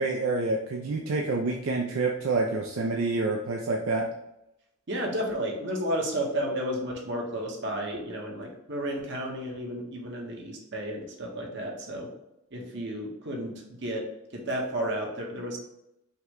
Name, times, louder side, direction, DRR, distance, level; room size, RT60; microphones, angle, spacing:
voice 1, 0.0-4.0, right 3 dB, 75° right, 1 dB, 0.4 m, -27 dB
voice 2, 4.9-12.1 12.5-13.5 13.8-14.0 14.3-15.6, equal, 55° right, 0 dB, 1.0 m, -32 dB
5.6 x 2.2 x 3.7 m, 0.85 s
head